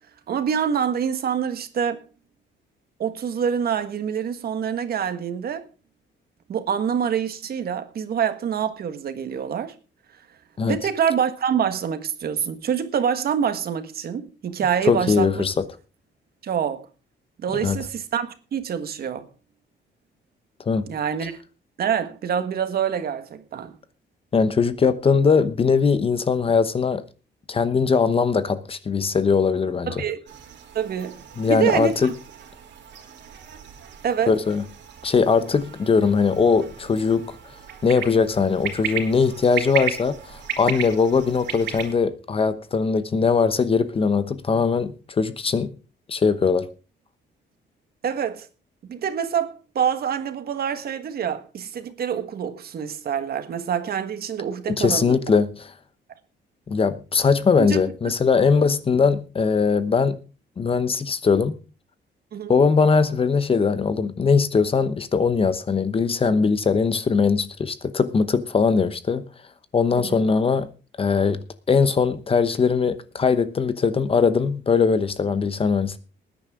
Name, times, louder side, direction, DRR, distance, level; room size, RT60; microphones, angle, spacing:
voice 1, 0.3-2.0 3.0-5.6 6.5-9.7 10.7-15.5 16.4-16.9 17.4-19.3 20.9-21.3 21.8-23.8 29.9-30.2 30.7-31.2 31.5-32.1 34.0-34.4 48.0-48.5 48.8-55.2 57.6-57.8 62.3-62.5 70.0-70.2, right 8 dB, 55° right, 1.6 m, -26 dB
voice 2, 14.8-15.6 17.6-17.8 20.7-20.9 24.3-27.0 27.5-30.0 31.4-32.1 34.3-34.6 35.0-37.4 37.8-45.7 46.1-46.7 54.7-55.7 56.7-60.2 60.6-61.6 62.5-69.2 69.7-70.7 71.0-76.0, left 5 dB, 30° left, 0.9 m, -20 dB
sound 1, 30.3-41.9, right 8 dB, 70° right, 2.8 m, -35 dB
19.5 x 10.0 x 3.7 m
cardioid pair, 150°, 19 cm